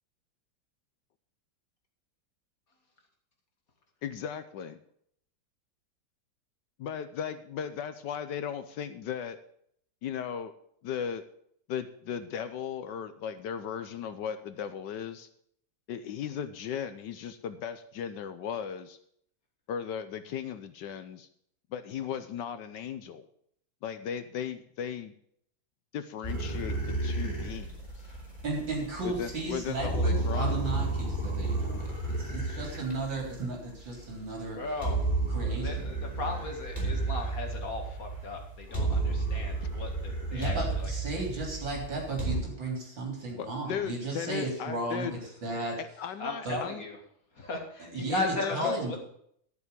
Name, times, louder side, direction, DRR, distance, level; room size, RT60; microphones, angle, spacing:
voice 1, 4.0-4.8 6.8-9.4 10.0-10.5 10.8-11.2 11.7-15.3 15.9-19.0 19.7-21.3 21.7-23.2 23.8-25.1 25.9-27.8 29.0-30.5 43.4-45.1 45.8-46.8 48.4-48.8, left 8 dB, 70° left, 11 dB, 1.3 m, -36 dB
sound 1, 26.2-42.4, right 2 dB, 20° left, 4.0 m, -32 dB
voice 2, 28.4-34.6 35.3-35.7 40.3-45.8 46.4-46.6 47.9-49.0, right 2 dB, 70° right, -1 dB, 4.4 m, -35 dB
voice 3, 34.5-35.0 35.6-40.9 46.2-47.0 47.4-49.0, left 2 dB, 45° left, 2 dB, 2.3 m, -36 dB
12.5 x 7.1 x 6.8 m, 0.67 s
omnidirectional pair, 2.1 m